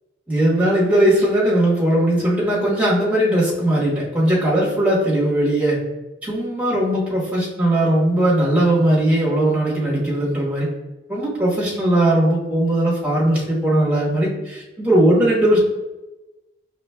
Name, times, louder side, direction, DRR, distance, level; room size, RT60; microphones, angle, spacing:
voice 1, 0.3-5.8 6.2-10.7 11.1-15.6, right 1 dB, 10° right, -7 dB, 1.2 m, -19 dB
5.0 x 3.3 x 2.2 m, 1.1 s
head